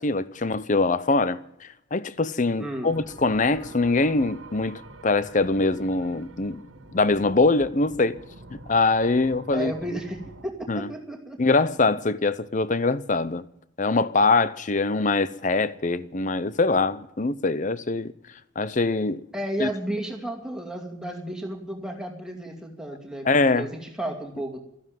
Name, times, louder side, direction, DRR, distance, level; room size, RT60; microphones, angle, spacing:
voice 1, 0.0-6.6 6.9-8.2 8.5-9.7 10.7-10.9 11.4-13.4 13.8-18.1 18.6-19.2 19.6-19.7 23.2-23.7, left 3 dB, 35° left, 0.7 m, -23 dB
voice 2, 2.6-2.9 9.5-11.4 19.3-24.6, right 1 dB, 5° right, 2.4 m, -33 dB
sound 1, 2.9-10.5, right 2 dB, 75° right, 1.4 m, -46 dB
13.5 x 11.5 x 9.2 m
head